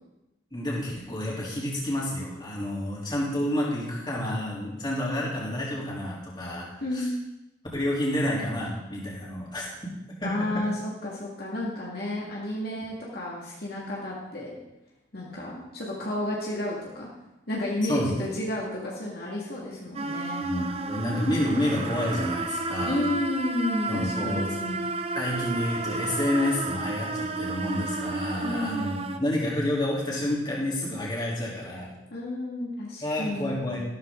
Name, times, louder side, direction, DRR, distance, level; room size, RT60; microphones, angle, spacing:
voice 1, 0.5-7.1 7.7-9.7 10.2-10.6 17.9-18.2 20.4-23.1 23.9-24.5 25.1-31.9 33.0-33.8, left 1 dB, 25° left, -5 dB, 3.5 m, -29 dB
voice 2, 6.8-7.1 10.2-14.5 15.1-17.1 17.5-20.4 22.8-24.9 28.4-28.9 32.1-33.7, left 1 dB, 55° left, -4 dB, 2.2 m, -31 dB
sound 1, 19.9-29.2, right 3 dB, 30° right, 0.7 m, -32 dB
14.0 x 13.0 x 3.9 m, 0.96 s
head